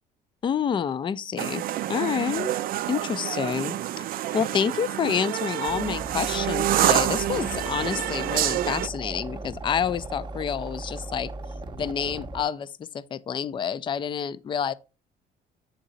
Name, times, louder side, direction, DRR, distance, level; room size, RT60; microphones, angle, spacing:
voice 1, 0.4-1.6 1.9-2.5 2.9-11.3 11.8-14.7, left 7 dB, 30° left, 0.4 m, -28 dB
sound 1, 1.4-8.9, right 13 dB, 60° right, 0.4 m, -27 dB
sound 2, 5.7-12.4, right 2 dB, 25° right, 0.7 m, -37 dB
7.3 x 3.9 x 4.0 m
cardioid pair, 110°, 17 cm